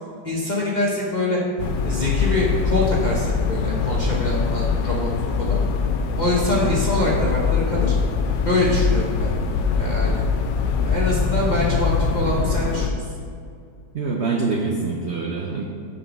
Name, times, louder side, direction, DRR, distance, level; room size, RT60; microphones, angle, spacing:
voice 1, 0.2-1.4 1.8-5.6 6.2-7.9 8.4-9.3 9.7-10.2 10.8-13.1, left 2 dB, 40° left, -5 dB, 0.6 m, -24 dB
sound 1, 1.6-12.9, left 5 dB, 80° left, 1.2 m, -22 dB
voice 2, 13.9-15.6, right 4 dB, 75° right, -1 dB, 0.6 m, -25 dB
5.4 x 5.0 x 6.1 m, 2.4 s
omnidirectional pair, 2.0 m